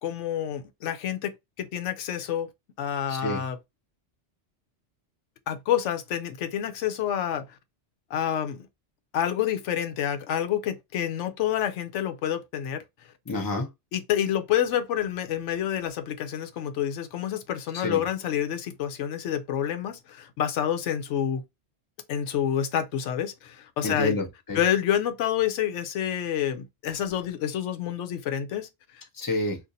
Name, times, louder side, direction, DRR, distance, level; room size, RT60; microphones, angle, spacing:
voice 1, 0.0-1.3 1.6-2.5 2.8-3.6 5.5-7.4 8.1-8.6 9.1-12.8 13.9-21.4 22.1-24.2 24.5-28.7, left 10 dB, 85° left, 0.9 m, -28 dB
voice 2, 3.1-3.4 13.3-13.7 17.8-18.0 23.8-24.6 29.2-29.6, left 1 dB, 20° left, 0.7 m, -28 dB
2.6 x 2.5 x 4.0 m
omnidirectional pair, 1.2 m